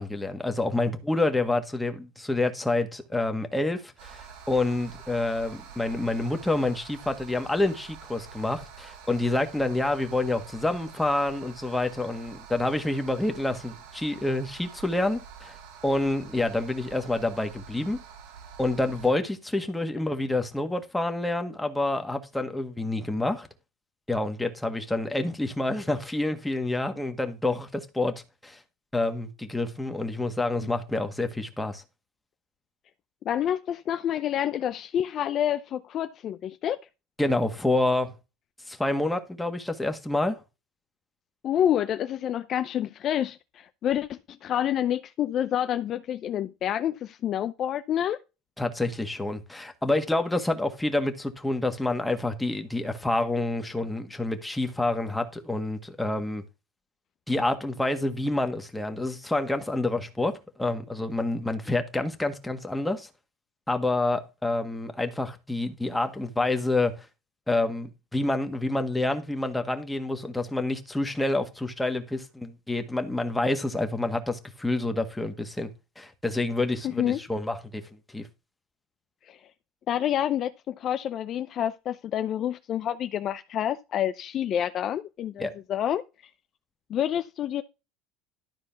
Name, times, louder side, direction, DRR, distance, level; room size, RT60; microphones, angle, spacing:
voice 1, 0.0-15.6 15.8-18.0 18.6-23.5 24.1-28.6 28.9-31.8 37.2-38.1 38.7-40.4 48.6-56.4 57.3-63.1 63.7-67.1 67.5-75.7 76.0-78.3 85.4-85.5, left 2 dB, 5° left, 1.7 m, -28 dB
sound 1, 4.0-19.1, right 7 dB, 80° right, 4.0 m, -47 dB
voice 2, 33.2-36.8 41.4-48.2 76.8-77.2 79.3-79.4 79.9-86.0 86.9-87.6, left 10 dB, 40° left, 0.6 m, -28 dB
12.5 x 4.6 x 5.8 m
cardioid pair, 140°, 0 cm